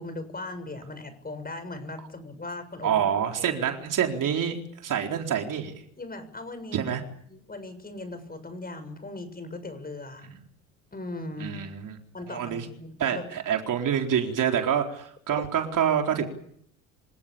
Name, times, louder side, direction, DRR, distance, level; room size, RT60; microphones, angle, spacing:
voice 1, 0.0-3.1 3.4-3.6 6.0-6.8 7.3-10.3 10.9-11.6 12.1-13.2, left 2 dB, 20° left, 11 dB, 7.1 m, -38 dB
voice 2, 2.8-5.8 6.7-7.0 11.4-12.0 12.3-12.7 13.0-16.3, right 8 dB, 50° right, 3 dB, 4.1 m, -27 dB
27.0 x 17.5 x 8.8 m, 0.67 s
hypercardioid pair, 60°, 41 cm